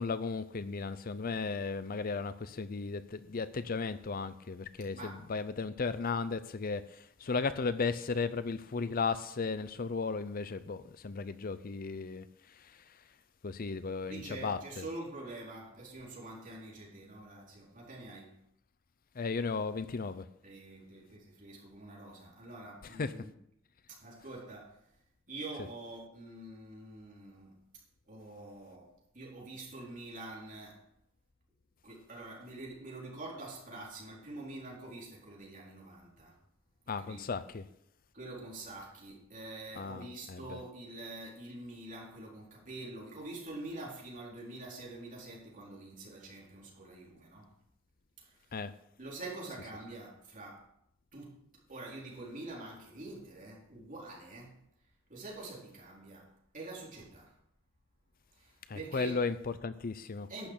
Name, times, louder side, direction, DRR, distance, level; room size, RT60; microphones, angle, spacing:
voice 1, 0.0-13.0 13.4-14.9 19.2-20.3 23.0-23.1 36.9-37.6 39.8-40.6 48.5-48.7 58.7-60.3, left 4 dB, 45° left, 0.6 m, -35 dB
voice 2, 14.1-18.4 20.4-23.3 23.9-24.8 25.3-27.6 28.1-30.8 31.8-36.4 36.9-37.3 38.1-47.5 48.2-48.4 49.0-50.7 51.1-51.4 51.7-54.6 55.1-57.4 58.4-59.2 60.3-60.5, right 2 dB, 40° right, 4.2 m, -46 dB
11.5 x 6.6 x 8.4 m
head